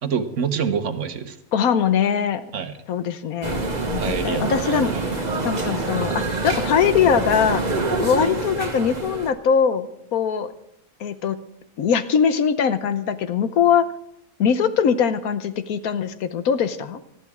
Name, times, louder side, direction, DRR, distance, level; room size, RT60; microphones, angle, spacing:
voice 1, 0.0-1.4 2.5-2.8 4.0-5.1, right 6 dB, 60° right, 9 dB, 1.3 m, -27 dB
voice 2, 1.5-2.4 2.9-7.6 8.0-10.5 11.0-11.4 11.8-13.9 14.4-17.0, left 7 dB, 90° left, 11 dB, 1.4 m, -22 dB
sound 1, 3.4-9.3, right 3 dB, 30° right, 1.4 m, -26 dB
20.0 x 13.5 x 3.6 m, 0.75 s
omnidirectional pair, 1.5 m